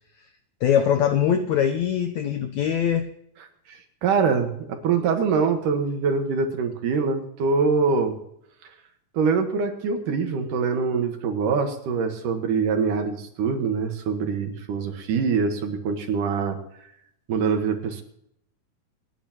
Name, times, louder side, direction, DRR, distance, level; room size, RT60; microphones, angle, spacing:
voice 1, 0.6-3.1, left 8 dB, 80° left, 8 dB, 1.6 m, -22 dB
voice 2, 3.7-8.2 9.1-16.6 17.3-18.0, right 5 dB, 65° right, 5 dB, 2.8 m, -24 dB
28.5 x 10.5 x 3.0 m, 0.74 s
omnidirectional pair, 4.3 m